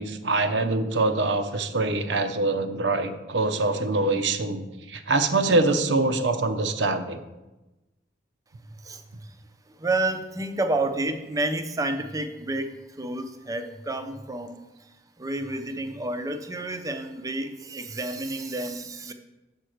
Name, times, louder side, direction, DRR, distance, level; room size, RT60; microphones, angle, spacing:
voice 1, 0.0-7.2, right 2 dB, 80° right, 8 dB, 0.7 m, -24 dB
voice 2, 8.7-9.4 9.7-19.1, right 2 dB, 20° right, 7 dB, 0.6 m, -30 dB
7.4 x 4.5 x 6.4 m, 1.0 s
head